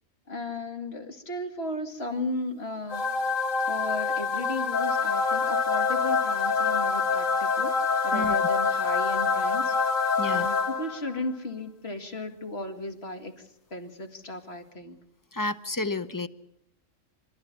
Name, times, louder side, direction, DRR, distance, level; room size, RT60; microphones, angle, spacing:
voice 1, 0.3-3.3 3.6-7.7 8.0-9.8 10.2-15.0, left 2 dB, 50° left, 6 dB, 2.4 m, -35 dB
sound 1, 2.9-11.2, left 5 dB, 70° left, 1.9 m, -26 dB
voice 2, 15.3-16.3, left 2 dB, 20° left, 13 dB, 0.6 m, -30 dB
26.5 x 13.5 x 9.7 m, 0.79 s
omnidirectional pair, 1.4 m